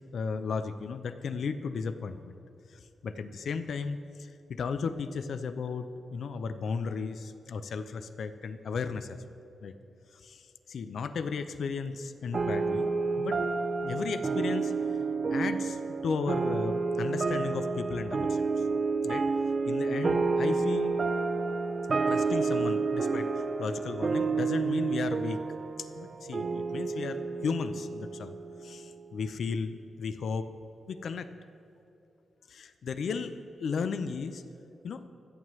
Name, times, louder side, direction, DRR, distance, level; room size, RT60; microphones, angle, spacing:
voice 1, 0.1-2.4 2.7-9.2 9.6-9.7 10.1-13.4 13.8-15.0 15.3-18.5 19.0-19.3 19.7-21.0 22.1-25.5 25.8-28.3 28.6-30.5 30.9-31.3 32.5-34.4 34.8-35.0, left 5 dB, 65° left, 10 dB, 0.6 m, -35 dB
sound 1, 12.3-29.1, right 4 dB, 40° right, 0.5 m, -30 dB
25.5 x 9.0 x 3.2 m, 2.9 s
wide cardioid pair, 135°, 0 cm